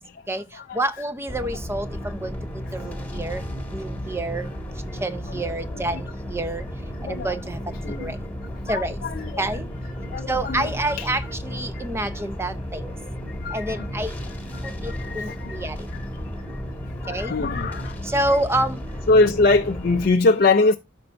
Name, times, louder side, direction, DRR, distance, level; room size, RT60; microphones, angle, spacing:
voice 1, 0.7-2.3 2.7-3.4 3.7-4.5 5.0-6.6 7.0-7.6 8.0-8.2 8.7-9.0 9.4-9.7 10.3-12.9 13.5-14.1 14.6-15.9 17.1-17.3 18.0-18.8, right 1 dB, 15° right, 0.7 m, -28 dB
sound 1, 1.3-20.1, equal, 10° left, 1.8 m, -33 dB
voice 2, 7.0-7.4 7.8-8.1 8.7-11.1 11.7-12.2 13.0-13.1 13.4-13.9 14.2-14.4 14.6-16.5 17.0-18.2 19.1-20.8, left 3 dB, 50° left, 0.5 m, -24 dB
13.0 x 5.4 x 2.5 m
head